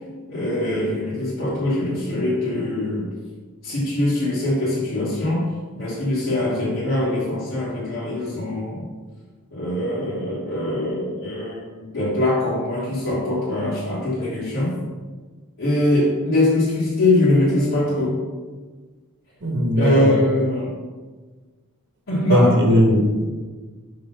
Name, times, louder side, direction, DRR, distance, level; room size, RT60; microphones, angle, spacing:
voice 1, 0.3-3.1 3.6-5.5 5.8-8.9 9.5-14.8 15.6-18.2 19.7-20.7 22.1-22.5, left 1 dB, 60° left, -8 dB, 1.5 m, -22 dB
voice 2, 19.4-20.1 22.3-23.3, equal, 55° right, 2 dB, 1.1 m, -18 dB
5.0 x 3.9 x 5.6 m, 1.4 s
head